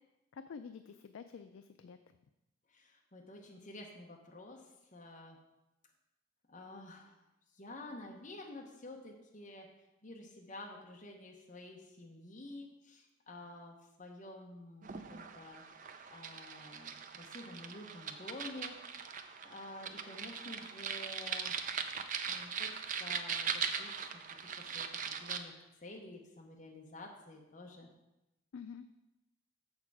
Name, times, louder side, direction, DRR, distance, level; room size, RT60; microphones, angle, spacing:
voice 1, 0.3-2.0 28.5-28.8, left 6 dB, 70° left, 9 dB, 0.3 m, -48 dB
voice 2, 2.7-5.4 6.5-7.2 7.5-9.7 10.0-18.7 19.1-21.5 22.3-27.9, left 2 dB, 40° left, 0 dB, 0.9 m, -50 dB
sound 1, 14.8-25.4, right 6 dB, 40° right, 0.4 m, -40 dB
7.0 x 6.6 x 4.8 m, 0.93 s
head